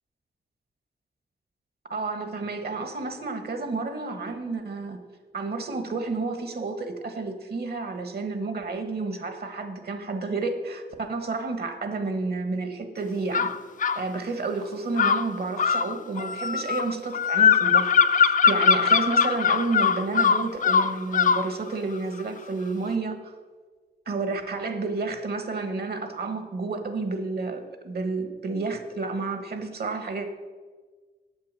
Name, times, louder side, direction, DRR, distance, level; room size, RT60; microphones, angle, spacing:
voice 1, 1.9-5.0 5.3-13.5 13.9-23.3 24.1-30.3, right 3 dB, 60° right, 8 dB, 1.4 m, -30 dB
sound 1, 13.3-14.0 15.0-21.5, left 6 dB, 45° left, 0.4 m, -21 dB
8.8 x 8.2 x 7.4 m, 1.4 s
wide cardioid pair, 105°, 18 cm